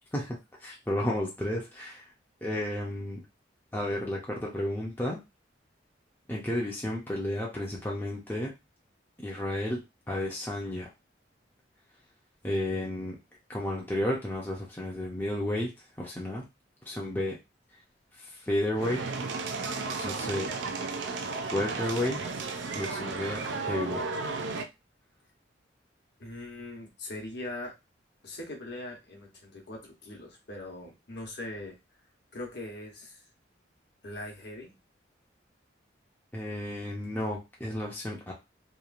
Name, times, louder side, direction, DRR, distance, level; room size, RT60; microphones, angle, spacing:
voice 1, 0.1-2.1 2.4-3.2 3.7-5.2 6.3-8.5 9.2-9.8 10.1-10.9 12.4-13.2 13.5-15.7 16.0-16.4 16.9-17.4 18.2-19.0 19.8-20.5 21.5-22.2 22.7-24.0 36.3-38.3, left 1 dB, 10° left, -3 dB, 0.5 m, -32 dB
sound 1, 18.7-24.7, right 4 dB, 70° right, 0.4 m, -34 dB
voice 2, 26.2-27.7 28.2-31.8 32.3-33.2 34.0-34.7, left 1 dB, 60° left, 1 dB, 0.9 m, -41 dB
3.0 x 2.4 x 2.4 m, 0.24 s
head